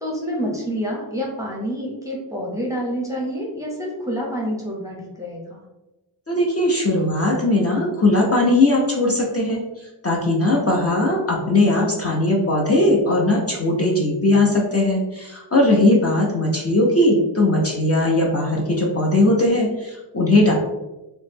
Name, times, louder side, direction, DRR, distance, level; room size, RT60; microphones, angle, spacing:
voice 1, 0.0-5.6, equal, 5° right, -3 dB, 0.7 m, -28 dB
voice 2, 6.3-9.6 10.0-20.5, left 2 dB, 30° left, -2 dB, 0.6 m, -19 dB
3.0 x 2.1 x 3.3 m, 1.0 s
wide cardioid pair, 105°, 45 cm